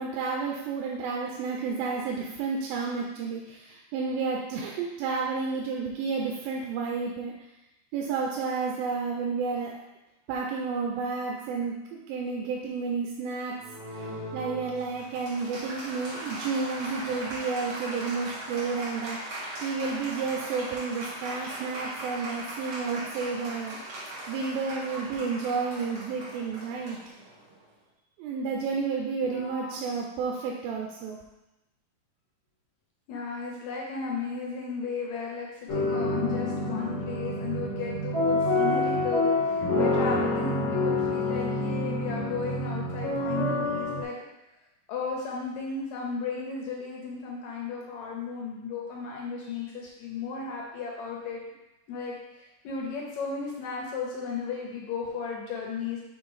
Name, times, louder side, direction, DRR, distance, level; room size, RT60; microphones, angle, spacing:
voice 1, 0.0-7.3 7.9-9.8 10.3-13.6 13.9-14.1 14.3-23.8 24.3-27.0 28.2-31.2, right 5 dB, 90° right, -1 dB, 2.5 m, -31 dB
Applause, 13.6-27.6, right 1 dB, 50° right, 2.6 m, -39 dB
voice 2, 29.2-29.9 33.1-44.2 44.9-51.4 51.9-56.0, left 5 dB, 75° left, -1 dB, 1.7 m, -35 dB
sound 1, 35.7-44.0, left 2 dB, 35° left, 1.4 m, -27 dB
6.5 x 3.3 x 4.7 m, 0.96 s
omnidirectional pair, 4.0 m